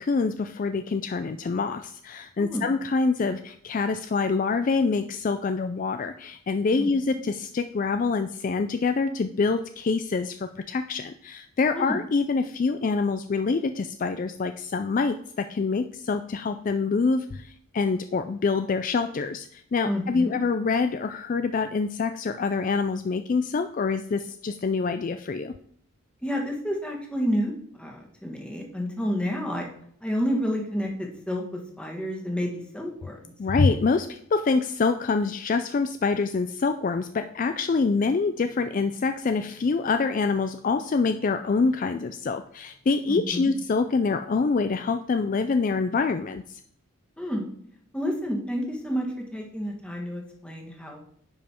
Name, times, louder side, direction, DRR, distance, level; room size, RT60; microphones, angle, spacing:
voice 1, 0.0-25.5 33.4-46.6, left 4 dB, 40° left, 9 dB, 0.3 m, -26 dB
voice 2, 2.4-2.7 6.8-6.9 11.7-12.0 19.8-20.3 26.2-29.7 30.0-33.3 43.1-43.5 47.2-47.4 47.9-51.0, equal, 5° left, 0 dB, 1.5 m, -30 dB
10.0 x 5.3 x 4.4 m, 0.67 s
head